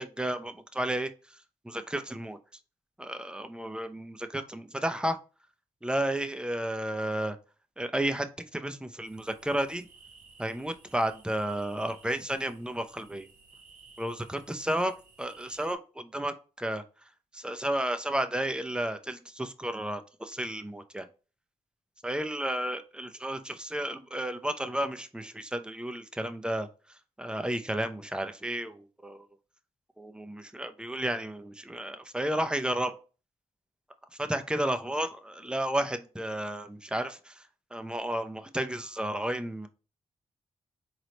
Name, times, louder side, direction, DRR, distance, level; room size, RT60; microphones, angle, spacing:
voice 1, 0.0-2.4 3.0-5.2 5.8-7.4 7.8-9.9 10.4-13.3 14.0-14.9 15.2-16.8 17.3-21.1 22.0-29.3 30.0-32.9 34.2-39.7, right 1 dB, 5° right, 9 dB, 0.6 m, -32 dB
sound 1, 9.0-15.7, right 4 dB, 70° right, 0.9 m, -57 dB
3.9 x 3.2 x 2.9 m, 0.34 s
supercardioid pair, 45°, 14 cm